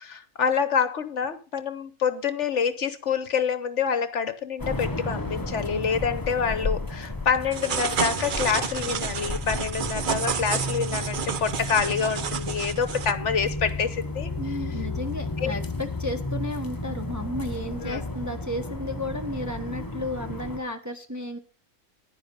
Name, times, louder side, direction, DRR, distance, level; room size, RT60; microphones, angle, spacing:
voice 1, 0.0-14.3 15.4-15.5 17.8-18.0, left 6 dB, 55° left, 1.1 m, -27 dB
sound 1, 4.6-20.6, left 2 dB, 15° left, 0.9 m, -33 dB
sound 2, 7.5-13.1, right 7 dB, 45° right, 0.7 m, -30 dB
voice 2, 14.4-21.4, left 1 dB, 15° right, 0.9 m, -33 dB
10.5 x 10.0 x 5.3 m
omnidirectional pair, 1.5 m